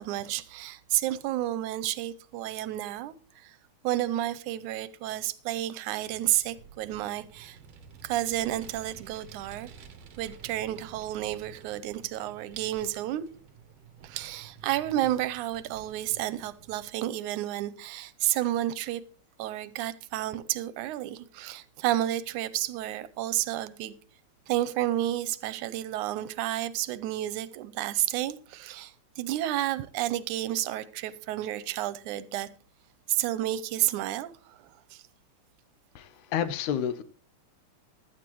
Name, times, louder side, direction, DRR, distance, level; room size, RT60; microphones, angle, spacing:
voice 1, 0.0-3.6 3.8-7.6 8.0-9.7 10.2-13.2 14.0-19.0 19.4-24.0 24.5-32.5 33.1-35.0, right 14 dB, 85° right, 2.1 m, -31 dB
Vehicle, 6.1-16.9, right 7 dB, 60° right, 2.1 m, -51 dB
voice 2, 36.0-37.0, left 9 dB, 80° left, 2.3 m, -30 dB
15.5 x 12.0 x 3.1 m
omnidirectional pair, 3.4 m